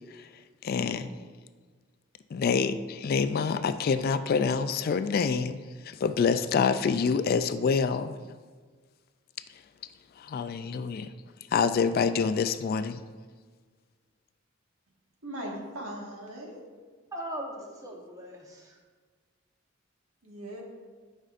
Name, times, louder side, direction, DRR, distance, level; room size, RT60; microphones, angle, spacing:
voice 1, 0.1-1.3 2.3-8.2 9.5-9.6 10.1-11.1 11.5-13.0, left 5 dB, 45° left, 11 dB, 0.3 m, -27 dB
voice 2, 15.2-16.6 20.2-20.6, right 1 dB, 80° right, -1 dB, 1.6 m, -39 dB
voice 3, 17.1-18.8, equal, 15° right, 0 dB, 1.0 m, -39 dB
11.0 x 5.4 x 2.5 m, 1.5 s
head